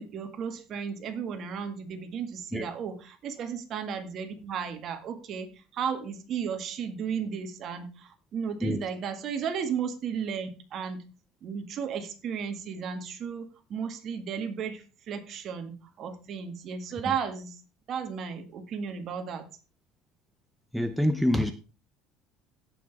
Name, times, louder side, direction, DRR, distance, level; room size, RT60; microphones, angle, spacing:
voice 1, 0.0-11.0 11.4-17.6 17.9-19.5, right 7 dB, 40° right, 7 dB, 1.9 m, -34 dB
voice 2, 20.7-21.5, left 1 dB, ahead, 7 dB, 0.7 m, -26 dB
16.5 x 5.9 x 3.5 m, 0.33 s
cardioid pair, 145°, 0 cm